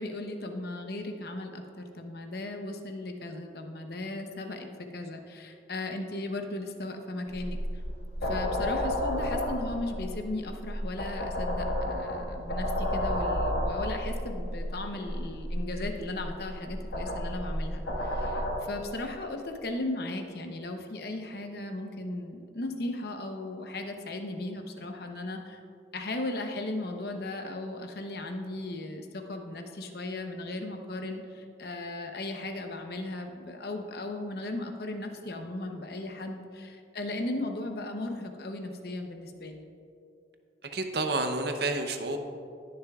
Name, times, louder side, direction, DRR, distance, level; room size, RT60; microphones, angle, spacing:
voice 1, 0.0-4.7 4.9-7.8 8.2-25.6 25.9-39.7, left 2 dB, 55° left, 4 dB, 0.8 m, -36 dB
sound 1, 7.3-18.5, left 1 dB, 70° left, 1.7 m, -32 dB
voice 2, 40.6-42.2, right 2 dB, 55° right, 5 dB, 0.7 m, -30 dB
19.5 x 6.8 x 2.4 m, 2.5 s
head